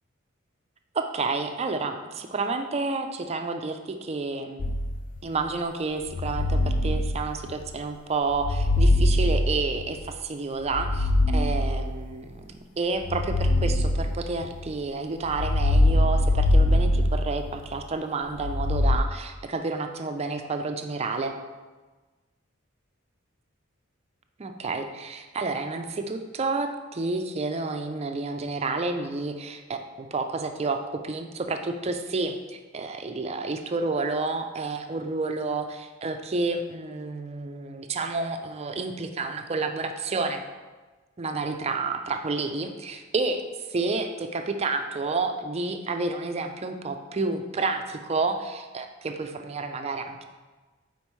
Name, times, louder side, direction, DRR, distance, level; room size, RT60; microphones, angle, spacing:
voice 1, 0.9-4.7 5.2-21.4 24.4-40.4 41.2-43.4 43.7-50.2, right 3 dB, 30° right, 6 dB, 0.5 m, -30 dB
sound 1, 4.6-5.3 6.1-7.7 8.3-10.1 10.6-12.2 13.0-14.7 15.3-17.8 18.4-19.0, left 1 dB, 40° left, 0.3 m, -23 dB
8.7 x 4.4 x 3.1 m, 1.3 s
head